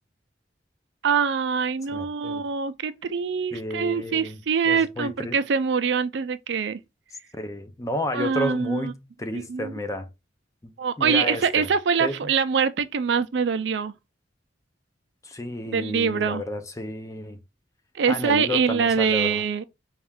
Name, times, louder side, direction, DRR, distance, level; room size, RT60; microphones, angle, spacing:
voice 1, 1.0-6.8 8.1-8.9 9.3-9.7 10.8-13.9 15.7-16.4 17.9-19.6, right 6 dB, 75° right, 0.4 m, -24 dB
voice 2, 1.9-2.4 3.5-4.4 4.7-5.4 7.3-10.1 10.6-10.7 11.0-11.7 12.0-12.2 15.2-17.4 18.1-19.4, left 1 dB, 20° left, 0.5 m, -31 dB
4.3 x 2.4 x 3.4 m
head